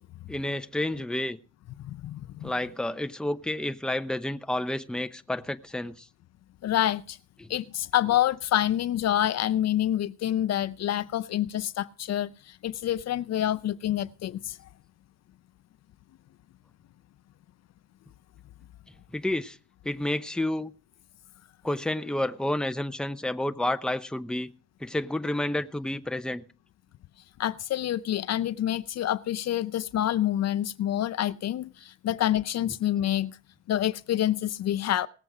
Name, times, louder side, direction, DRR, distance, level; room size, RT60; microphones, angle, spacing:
voice 1, 0.3-1.4 2.4-6.1 7.4-7.5 19.1-19.6 19.8-20.7 21.6-24.5 24.8-26.4, left 1 dB, 5° left, 0.7 m, -30 dB
voice 2, 1.8-2.5 6.6-7.2 7.5-14.6 27.4-33.4 33.7-35.1, left 12 dB, 60° left, 0.5 m, -27 dB
18.5 x 7.7 x 4.7 m
cardioid pair, 90°, 30 cm